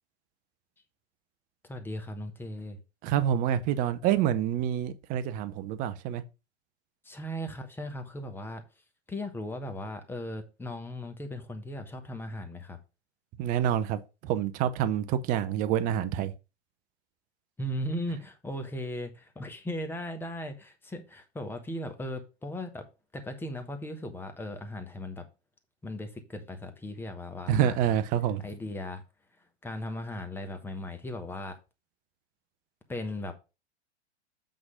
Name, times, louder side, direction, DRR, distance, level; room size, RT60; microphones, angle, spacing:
voice 1, 1.6-2.8 7.0-8.6 9.1-12.8 17.6-22.9 23.1-25.3 25.8-28.0 28.4-29.0 29.6-31.6 32.9-33.3, left 1 dB, 5° left, 1.0 m, -37 dB
voice 2, 3.0-6.2 13.4-16.3 27.5-28.4, right 10 dB, 25° right, 0.6 m, -27 dB
7.8 x 3.8 x 5.6 m
figure-of-eight pair, 100°, 34 cm